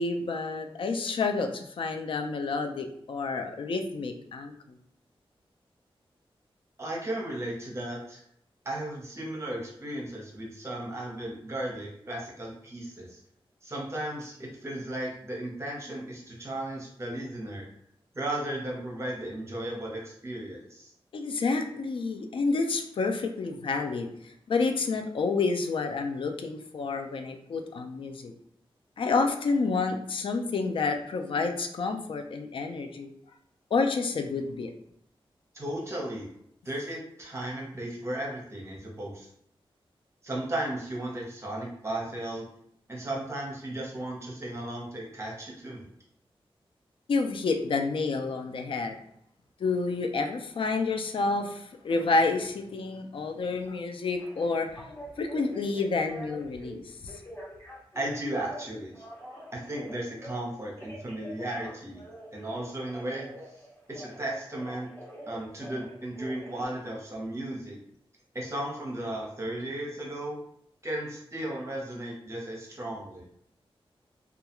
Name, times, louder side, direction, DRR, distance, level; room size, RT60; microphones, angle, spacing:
voice 1, 0.0-4.8 21.1-28.3 29.0-33.1 33.7-34.7 47.1-48.9 49.6-54.9 55.2-57.2, left 4 dB, 65° left, 6 dB, 0.3 m, -29 dB
voice 2, 6.8-8.2 8.6-13.2 13.6-17.6 18.1-20.9 35.5-36.3 36.6-39.3 40.2-42.4 42.9-45.9 57.9-59.0 59.5-62.0 62.3-63.6 63.9-64.9 65.3-67.8 68.3-70.4 70.8-73.2, right 1 dB, 30° right, -2 dB, 0.8 m, -35 dB
Telephone, 54.2-56.7 57.1-58.6 58.9-60.4 60.8-64.2 64.5-66.7, equal, 35° left, 1.4 m, -45 dB
2.3 x 2.3 x 2.9 m, 0.69 s
wide cardioid pair, 105°, 10 cm